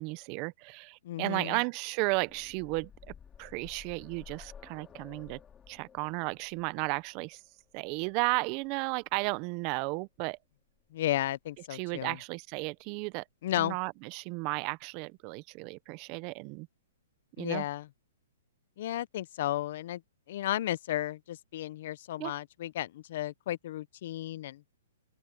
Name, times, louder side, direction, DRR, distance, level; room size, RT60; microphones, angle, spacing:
voice 1, 0.0-2.9 3.4-5.4 5.7-7.4 7.7-10.4 11.7-13.2 13.6-16.7 17.4-17.6 22.2-22.3, right 27 dB, 35° right, 0.8 m, -34 dB
voice 2, 1.0-1.6 10.9-12.2 13.4-13.8 17.4-17.9 18.8-20.0 20.3-24.6, left 13 dB, 55° left, 0.8 m, -33 dB
sound 1, 1.9-9.7 10.8-10.9 11.3-11.4, left 7 dB, 15° left, 2.8 m, -54 dB
open air
hypercardioid pair, 140°, 0 cm